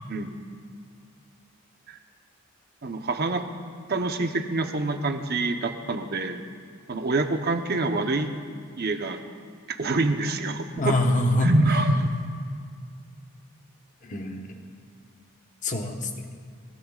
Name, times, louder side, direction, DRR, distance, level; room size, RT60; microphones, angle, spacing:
voice 1, 2.8-3.5 3.9-6.4 6.9-8.3 8.8-9.2 9.7-11.0 11.4-12.1, right 2 dB, 45° right, 6 dB, 0.9 m, -26 dB
voice 2, 10.8-11.5 14.0-14.6 15.6-16.3, left 1 dB, 35° left, 3 dB, 1.1 m, -25 dB
23.0 x 16.5 x 2.4 m, 2.2 s
head